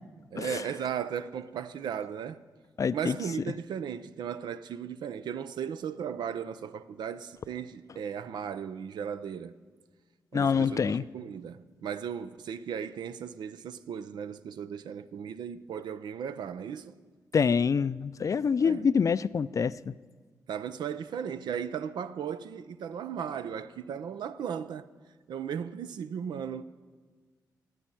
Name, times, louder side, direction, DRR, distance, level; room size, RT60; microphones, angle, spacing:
voice 1, 0.3-2.4 2.9-9.5 10.3-16.9 18.6-18.8 20.5-24.9 25.3-26.6, right 8 dB, 75° right, 0.6 m, -36 dB
voice 2, 2.8-3.2 10.3-11.0 17.3-19.9, left 6 dB, 45° left, 0.4 m, -26 dB
13.5 x 9.2 x 8.9 m
cardioid pair, 60°, 7 cm